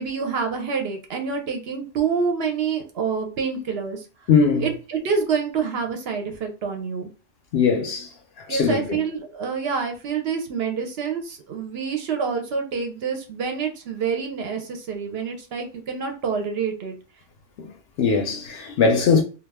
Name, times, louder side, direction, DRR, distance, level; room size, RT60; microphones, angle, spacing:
voice 1, 0.0-4.1 4.6-7.1 8.5-16.9, right 5 dB, 65° right, 0.7 m, -27 dB
voice 2, 4.3-4.7 7.5-8.1 8.5-9.0 17.6-17.7 18.0-19.2, left 5 dB, 65° left, 0.7 m, -20 dB
2.3 x 2.2 x 3.3 m
omnidirectional pair, 1.3 m